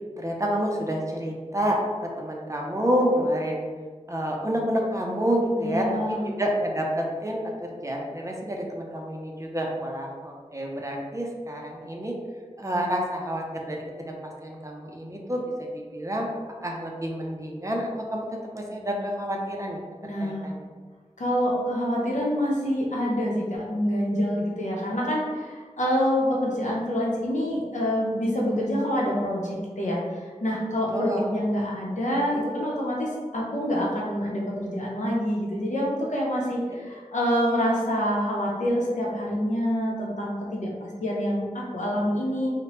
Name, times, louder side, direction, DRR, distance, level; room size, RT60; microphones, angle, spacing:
voice 1, 0.2-3.6 4.1-12.1 12.6-16.3 16.6-18.3 18.5-20.6 30.9-31.3 36.7-36.8, equal, 25° right, 0 dB, 0.5 m, -29 dB
voice 2, 5.6-6.2 20.0-20.5 21.2-42.5, equal, 80° left, -3 dB, 0.7 m, -26 dB
3.0 x 2.1 x 2.9 m, 1.5 s
wide cardioid pair, 45°, 13 cm